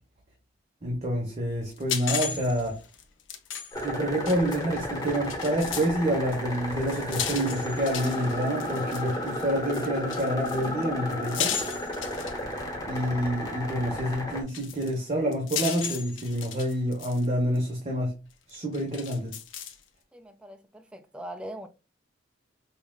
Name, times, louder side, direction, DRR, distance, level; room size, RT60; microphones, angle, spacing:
voice 1, 0.8-2.8 3.8-11.5 12.9-18.1 18.5-19.3, equal, 35° right, 0.9 m, -28 dB
sound 1, 1.7-5.9 6.3-12.8 14.0-14.1 14.5-17.3 17.6-17.7 18.5-19.8, left 8 dB, 75° left, 0.6 m, -35 dB
sound 2, 3.7-14.4, left 1 dB, 20° left, 1.1 m, -33 dB
voice 2, 20.1-21.7, right 1 dB, 5° right, 0.3 m, -41 dB
5.5 x 2.4 x 2.3 m
head